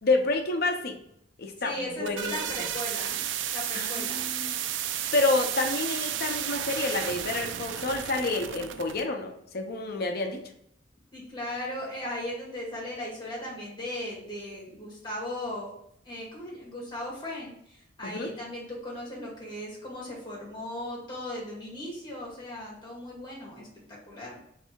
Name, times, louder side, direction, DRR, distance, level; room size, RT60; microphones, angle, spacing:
voice 1, 0.0-1.0 1.4-2.3 3.7-4.6 4.9-10.4 18.0-18.3, left 3 dB, 55° left, 3 dB, 0.7 m, -29 dB
voice 2, 1.6-3.2 3.5-4.2 11.1-15.7 16.0-24.4, left 1 dB, 25° left, -4 dB, 1.7 m, -37 dB
sound 1, 1.7-9.0, right 10 dB, 70° right, 0.3 m, -33 dB
3.4 x 3.3 x 4.5 m, 0.72 s
head